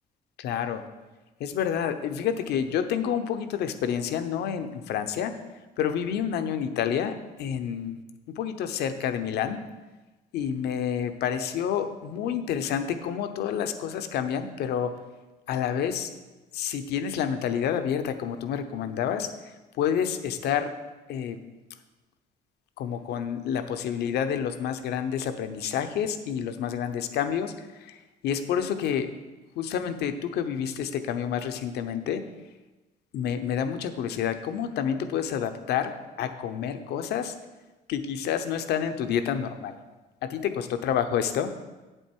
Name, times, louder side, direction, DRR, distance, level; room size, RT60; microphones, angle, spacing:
voice 1, 0.4-0.8 1.4-5.4 5.8-7.9 8.3-9.6 10.3-14.9 15.5-16.1 16.5-19.3 19.8-20.7 21.1-21.4 22.8-27.5 27.8-28.0 28.2-29.1 29.6-32.2 33.1-35.9 36.2-37.3 37.9-39.8 40.2-41.5, left 8 dB, 75° left, 9 dB, 0.8 m, -29 dB
8.2 x 7.9 x 4.5 m, 1.2 s
cardioid pair, 110°, 17 cm